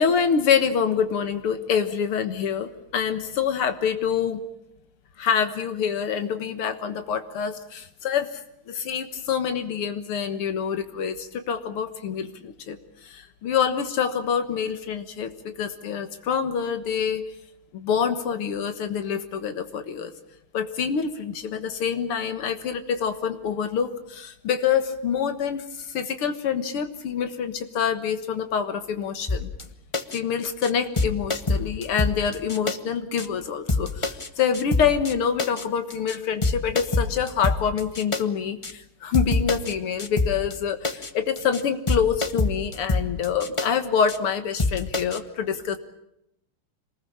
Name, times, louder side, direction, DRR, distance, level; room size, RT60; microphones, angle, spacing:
voice 1, 0.0-4.4 5.2-8.4 8.7-17.2 17.7-20.1 20.5-29.5 30.1-45.8, left 7 dB, 85° left, 8 dB, 2.4 m, -26 dB
sound 1, 29.3-29.6 29.9-30.2 30.4-30.7 31.0-32.8 33.2-33.3 33.7-34.3 34.5-35.1 35.4-35.6 35.9-36.2 36.4-38.2 38.6-38.7 39.1-39.7 40.0-40.5 40.8-41.1 41.4-41.6 41.9-43.7 44.1-44.2 44.6-45.2, left 3 dB, 20° left, 0.9 m, -26 dB
27.0 x 20.5 x 8.7 m, 0.81 s
omnidirectional pair, 2.4 m